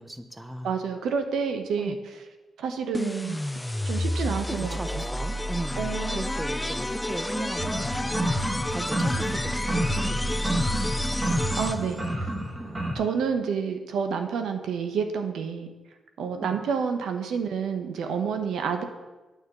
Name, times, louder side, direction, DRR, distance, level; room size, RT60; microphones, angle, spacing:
voice 1, 0.0-0.7 1.8-2.0 4.3-11.4 16.4-16.6, right 1 dB, 10° right, 9 dB, 0.9 m, -37 dB
voice 2, 0.6-2.0 2.6-3.4 3.8-5.0 5.8-6.2 11.6-12.3 12.9-15.7 16.2-18.8, right 6 dB, 90° right, 6 dB, 1.1 m, -29 dB
sound 1, 2.9-12.1, left 1 dB, 10° left, 0.4 m, -30 dB
sound 2, 7.6-12.9, right 1 dB, 25° right, 2.8 m, -29 dB
9.4 x 5.9 x 8.3 m, 1.1 s
cardioid pair, 90°, 0 cm